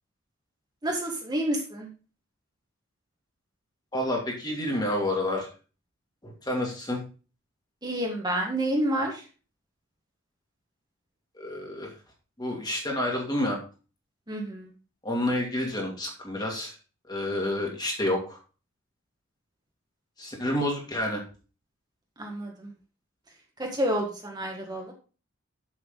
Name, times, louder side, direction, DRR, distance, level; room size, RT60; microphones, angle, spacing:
voice 1, 0.8-1.9 7.8-9.2 14.3-14.7 22.2-22.7 23.6-24.9, right 1 dB, 20° right, 0 dB, 1.6 m, -29 dB
voice 2, 3.9-5.5 6.2-7.0 11.4-11.9 12.4-13.6 15.0-16.8 17.1-18.4 20.2-21.2, left 1 dB, 20° left, 1 dB, 2.3 m, -29 dB
7.4 x 7.3 x 3.9 m, 0.34 s
head